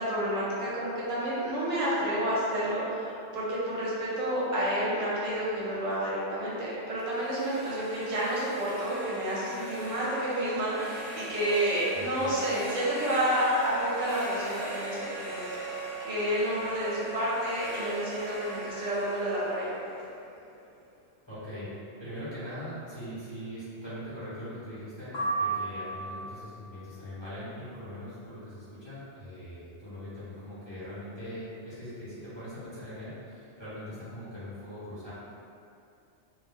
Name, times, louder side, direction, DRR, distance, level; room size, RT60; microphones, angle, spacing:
voice 1, 0.0-19.7, equal, 70° right, -8 dB, 1.0 m, -30 dB
sound 1, 7.0-20.8, right 2 dB, 50° right, 0.7 m, -40 dB
voice 2, 11.9-12.3 21.3-21.7 22.0-35.1, equal, 25° left, -14 dB, 0.9 m, -41 dB
sound 2, 25.1-26.4, right 3 dB, 50° left, 0.7 m, -31 dB
2.5 x 2.1 x 3.4 m, 2.6 s
omnidirectional pair, 1.3 m